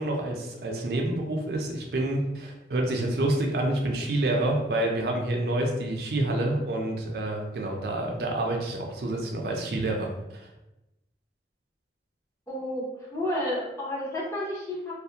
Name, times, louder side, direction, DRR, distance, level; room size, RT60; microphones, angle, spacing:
voice 1, 0.0-10.4, right 1 dB, 60° right, 1 dB, 0.4 m, -28 dB
voice 2, 12.5-14.9, left 1 dB, 15° left, -6 dB, 0.5 m, -31 dB
2.3 x 2.0 x 2.7 m, 0.95 s
head